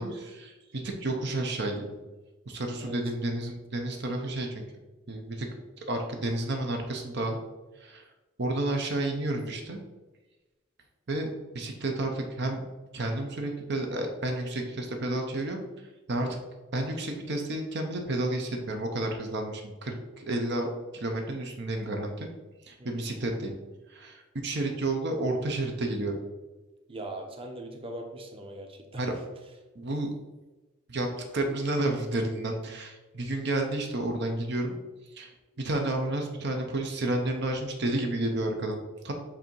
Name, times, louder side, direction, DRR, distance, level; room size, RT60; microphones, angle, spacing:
voice 1, 0.0-2.0 2.5-4.6 5.1-5.5 5.8-7.4 7.8-8.1 8.4-9.8 11.1-11.3 11.5-12.6 12.9-15.6 16.1-16.4 16.7-20.7 20.9-22.3 22.6-23.6 23.9-26.2 29.0-29.1 29.7-30.1 30.9-31.1 31.3-34.8 35.1-39.1, right 2 dB, 60° right, 3 dB, 0.8 m, -31 dB
voice 2, 26.9-29.1, right 1 dB, 30° right, 3 dB, 0.9 m, -40 dB
7.8 x 2.8 x 4.5 m, 1.1 s
head